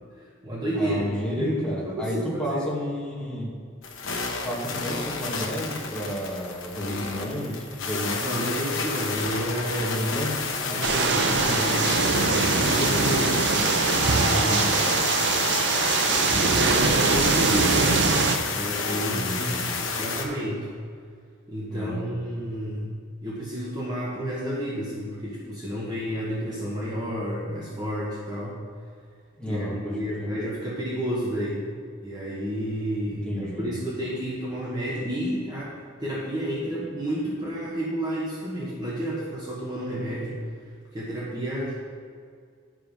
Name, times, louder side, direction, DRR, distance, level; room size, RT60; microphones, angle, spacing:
voice 1, 0.2-2.6 8.2-10.0 10.7-13.5 14.0-15.0 16.3-18.0 18.5-20.7 21.5-22.9 23.2-28.6 29.4-31.7 32.0-40.4 40.9-41.7, equal, 20° right, -6 dB, 1.1 m, -30 dB
voice 2, 0.7-3.5 4.4-8.2 9.8-11.9 19.0-19.8 21.7-22.1 29.4-30.3 33.0-33.8, equal, 5° left, -8 dB, 1.9 m, -32 dB
sound 1, 3.8-20.2, left 4 dB, 80° left, 1.0 m, -30 dB
sound 2, 10.8-18.4, right 4 dB, 55° right, 0.6 m, -22 dB
11.0 x 5.1 x 5.2 m, 2.2 s
head